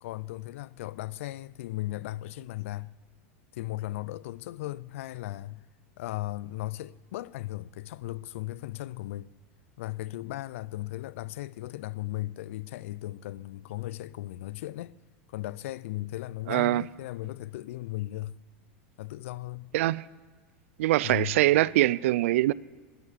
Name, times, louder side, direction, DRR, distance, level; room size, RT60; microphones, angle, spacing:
voice 1, 0.0-2.9 3.5-5.6 6.0-9.3 9.8-15.0 15.3-18.4 19.0-19.7 21.0-21.4, left 16 dB, 75° left, 0.4 m, -36 dB
voice 2, 16.5-16.8 19.7-20.1 20.8-22.5, right 16 dB, 75° right, 0.4 m, -23 dB
14.0 x 9.4 x 6.6 m
hypercardioid pair, 115°, 7 cm